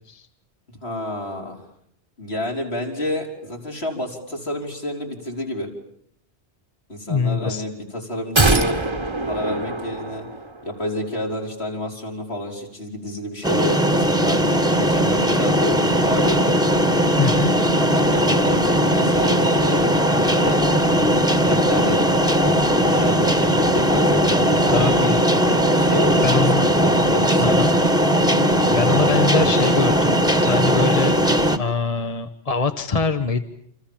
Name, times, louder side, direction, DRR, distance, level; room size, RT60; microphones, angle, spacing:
voice 1, 0.7-1.6 2.2-5.7 6.9-8.8 9.3-10.3 10.6-14.4 14.8-16.6 17.8-19.9 20.3-20.5 21.1-24.9 25.7-27.8, equal, 65° left, 0 dB, 5.2 m, -29 dB
voice 2, 7.1-7.6 17.2-17.5 24.7-25.2 26.2-26.6 27.4-27.7 28.7-31.2 31.5-33.4, left 5 dB, 35° left, 9 dB, 1.3 m, -23 dB
sound 1, 8.4-10.7 11.0-11.1, right 2 dB, 25° right, 1.4 m, -23 dB
sound 2, 13.4-31.6, equal, 5° right, 1.5 m, -18 dB
28.5 x 27.5 x 7.3 m, 0.69 s
omnidirectional pair, 1.1 m